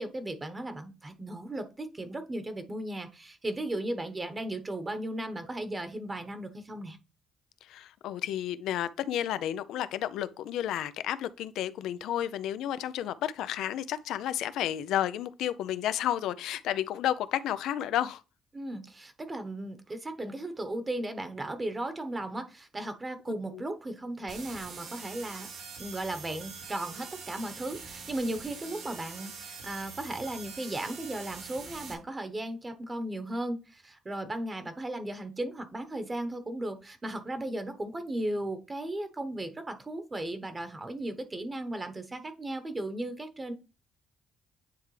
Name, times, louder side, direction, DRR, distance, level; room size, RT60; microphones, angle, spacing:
voice 1, 0.0-7.0 18.5-25.5 25.8-43.5, right 1 dB, 25° right, 1.1 m, -36 dB
voice 2, 7.6-18.2 23.5-23.6, left 11 dB, 85° left, 0.4 m, -31 dB
sound 1, 24.3-31.9, right 5 dB, 75° right, 1.4 m, -44 dB
9.4 x 3.3 x 3.2 m
cardioid pair, 90°, 0 cm